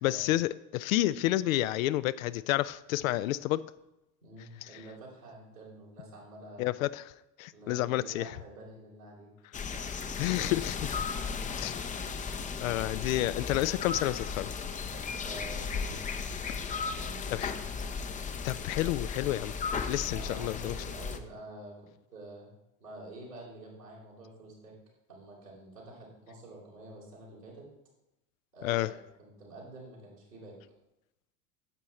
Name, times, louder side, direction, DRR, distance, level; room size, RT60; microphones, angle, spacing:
voice 1, 0.0-3.6 4.6-4.7 6.6-7.1 7.4-8.3 10.2-11.0 11.6-11.8 12.6-14.5 17.3-17.5 18.4-19.5 19.8-20.7 28.6-28.9, left 16 dB, 60° left, 17 dB, 0.5 m, -30 dB
voice 2, 4.2-6.6 7.5-9.3 9.7-9.9 15.2-16.0 16.6-17.5 17.7-18.0 20.1-21.8 22.1-22.5 22.8-24.8 25.1-27.7 28.5-28.9 29.2-30.6, right 2 dB, 90° right, -5 dB, 3.8 m, -48 dB
sound 1, 9.5-21.2, left 5 dB, 15° left, 0.6 m, -36 dB
9.7 x 7.5 x 4.2 m, 0.91 s
figure-of-eight pair, 75°, 47 cm